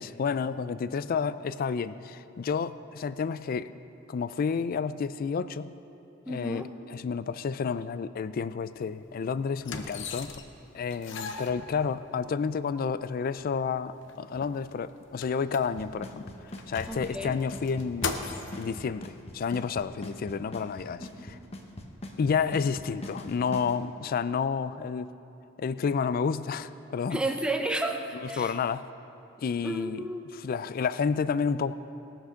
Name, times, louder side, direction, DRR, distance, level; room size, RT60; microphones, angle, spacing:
voice 1, 0.0-3.7 4.1-5.7 6.3-10.4 10.7-16.3 16.7-18.1 18.6-21.4 22.2-25.1 25.6-27.2 28.4-28.8 29.4-30.1 30.4-31.7, left 5 dB, 45° left, 14 dB, 0.3 m, -30 dB
voice 2, 6.3-6.7 16.9-17.4 21.0-21.1 27.1-28.5 29.6-30.2, right 1 dB, 5° right, 4 dB, 0.7 m, -32 dB
sound 1, 8.8-8.9 9.6-10.6 10.9-12.2 13.0-13.1 13.4-13.5 13.9-16.0 16.5-18.7 19.5-19.6, left 4 dB, 65° left, 0.8 m, -38 dB
Drum kit / Snare drum / Bass drum, 15.8-23.7, left 1 dB, 30° left, 1.0 m, -41 dB
17.5 x 6.0 x 6.3 m, 2.9 s
head